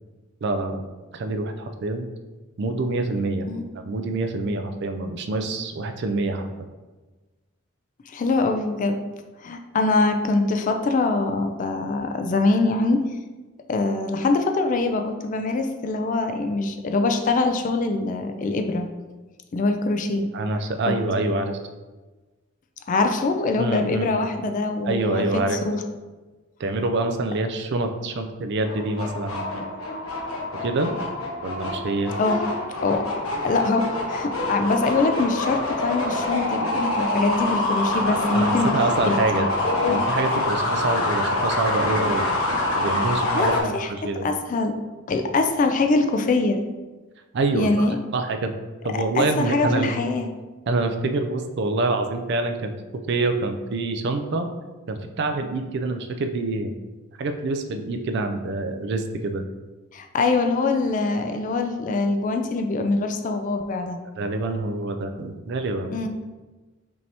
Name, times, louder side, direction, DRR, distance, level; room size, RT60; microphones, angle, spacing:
voice 1, 0.4-0.9 1.1-2.1 2.6-3.5 3.8-6.5 20.3-21.6 23.6-24.2 24.8-25.6 26.6-29.7 30.6-30.9 31.4-32.1 38.1-39.5 39.9-42.3 42.8-44.3 47.3-48.5 48.8-49.9 50.7-52.7 53.1-54.5 54.9-56.7 57.2-59.4 64.2-66.0, right 2 dB, 55° right, 6 dB, 0.4 m, -26 dB
voice 2, 8.1-9.0 9.4-13.1 13.7-18.9 19.5-20.3 22.9-25.2 25.5-25.8 32.2-32.4 32.8-33.1 33.4-38.7 39.0-40.0 40.3-40.4 43.3-43.9 44.2-44.7 45.1-46.6 47.5-48.0 48.9-50.3 59.9-64.0 65.9-66.1, left 3 dB, 40° left, 5 dB, 0.3 m, -23 dB
sound 1, 28.6-43.6, left 2 dB, 85° left, 1.0 m, -26 dB
5.2 x 2.8 x 3.3 m, 1.2 s
head